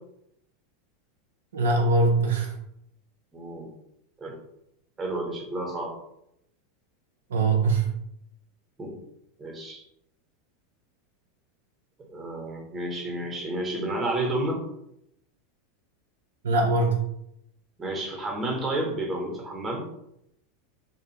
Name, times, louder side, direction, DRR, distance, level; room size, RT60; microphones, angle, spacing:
voice 1, 1.5-2.6 7.3-7.9 16.4-17.0, right 3 dB, 70° right, 1 dB, 0.4 m, -22 dB
voice 2, 3.3-3.7 4.2-4.4 5.0-5.9 8.8-9.0 9.4-9.8 12.1-14.6 17.8-19.8, right 1 dB, 20° right, 1 dB, 0.8 m, -31 dB
2.5 x 2.4 x 2.9 m, 0.79 s
figure-of-eight pair, 85°, 0 cm